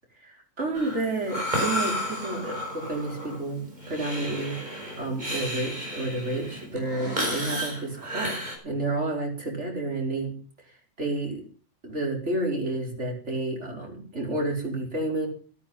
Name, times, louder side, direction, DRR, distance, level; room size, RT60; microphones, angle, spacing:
voice 1, 0.2-8.4 8.6-10.3 11.0-11.4 11.8-15.3, right 2 dB, 60° right, 0 dB, 5.4 m, -30 dB
Breathing, 0.7-8.6, equal, 35° right, 6.0 m, -32 dB
14.5 x 13.0 x 5.4 m, 0.41 s
omnidirectional pair, 1.3 m